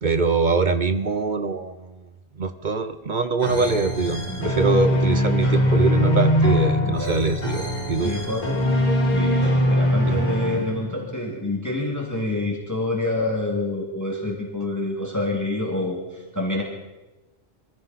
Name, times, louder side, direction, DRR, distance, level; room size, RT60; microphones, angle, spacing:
voice 1, 0.0-2.0 2.4-8.1 10.1-10.2, right 4 dB, 50° right, 9 dB, 0.8 m, -23 dB
sound 1, 3.4-11.1, equal, 40° left, 3.5 m, -22 dB
voice 2, 4.3-4.8 6.8-7.2 8.0-8.6 9.1-16.6, left 2 dB, 15° left, -1 dB, 2.2 m, -27 dB
22.5 x 15.0 x 4.1 m, 1.1 s
omnidirectional pair, 1.1 m